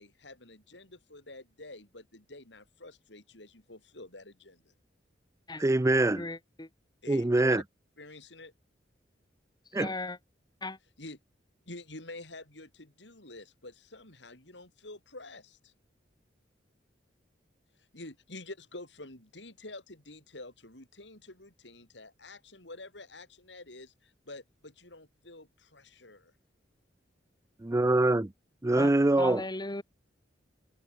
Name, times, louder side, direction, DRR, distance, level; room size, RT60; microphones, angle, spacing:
voice 1, 0.0-4.7 7.0-7.6 8.0-8.5 11.0-11.2 11.7-15.7 17.9-26.3, left 2 dB, 75° left, 6.6 m, -48 dB
voice 2, 5.6-6.3 7.1-7.6 9.7-9.9 27.6-28.3 28.6-29.4, right 2 dB, 15° right, 0.5 m, -24 dB
voice 3, 6.2-6.7 9.8-10.2 10.6-10.8 28.8-28.9 29.2-29.8, left 2 dB, 25° left, 2.3 m, -36 dB
head